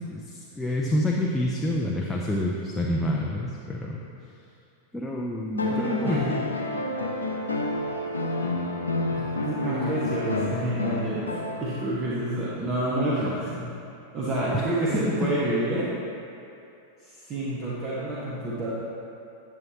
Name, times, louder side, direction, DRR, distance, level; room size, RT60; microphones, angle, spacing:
voice 1, 0.0-4.0 4.9-6.3 14.5-14.7 15.1-15.2, left 1 dB, 5° left, -3 dB, 0.6 m, -27 dB
sound 1, 5.6-12.0 13.5-13.6, left 2 dB, 80° left, 0.7 m, -29 dB
voice 2, 5.7-6.4 9.2-11.3 11.6-13.6 14.1-15.9 17.0-18.7, right 1 dB, 30° right, -8 dB, 1.3 m, -28 dB
10.5 x 6.9 x 3.0 m, 2.7 s
figure-of-eight pair, 90°, 0 cm